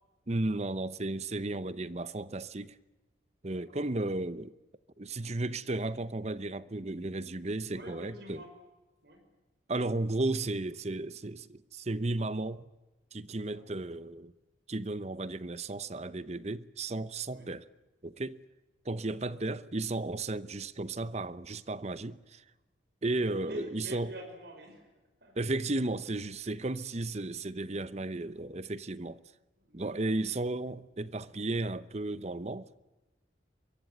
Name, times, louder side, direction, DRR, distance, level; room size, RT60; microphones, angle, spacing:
voice 1, 0.3-2.8 3.4-4.5 5.0-8.4 9.7-12.6 13.1-14.3 14.7-17.7 18.0-18.4 18.8-22.4 23.0-24.1 25.4-29.2 29.7-32.7, right 2 dB, 35° right, 0.8 m, -34 dB
voice 2, 3.5-3.9 7.7-8.5 9.0-9.2 13.5-13.6 17.3-17.5 19.0-19.4 23.2-24.9 25.2-25.3 29.6-30.1, equal, 55° right, 5.5 m, -47 dB
24.0 x 23.0 x 9.0 m
head